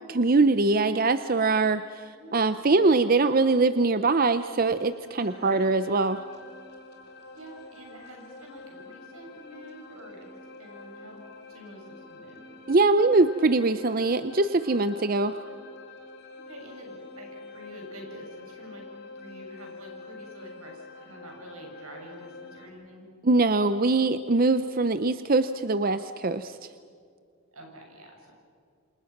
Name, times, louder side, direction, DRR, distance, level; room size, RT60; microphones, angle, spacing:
voice 1, 0.1-2.0 2.3-6.2 12.7-15.4 23.2-26.6, right 3 dB, 40° right, 11 dB, 0.6 m, -22 dB
sound 1, 4.3-22.7, left 3 dB, 50° left, 3.2 m, -47 dB
voice 2, 5.2-5.6 7.3-10.3 10.6-12.6 16.4-23.1 27.5-28.3, right 1 dB, 85° right, 1 dB, 7.3 m, -47 dB
28.0 x 27.0 x 6.0 m, 2.3 s
head